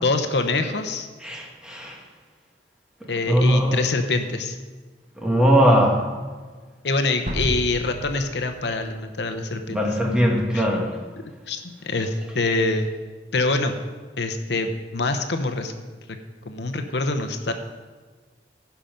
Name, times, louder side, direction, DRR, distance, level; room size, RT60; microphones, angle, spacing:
voice 1, 0.0-1.1 3.1-4.6 6.8-9.8 10.5-10.6 11.5-12.9 13.3-13.7 14.2-15.7 16.4-17.5, left 3 dB, 75° left, 7 dB, 0.8 m, -25 dB
voice 2, 1.2-2.0 3.3-3.9 5.2-6.1 9.7-11.0, equal, 5° right, -1 dB, 1.6 m, -20 dB
sound 1, 7.3-9.3, equal, 40° right, 1.6 m, -31 dB
16.0 x 5.7 x 5.2 m, 1.4 s
head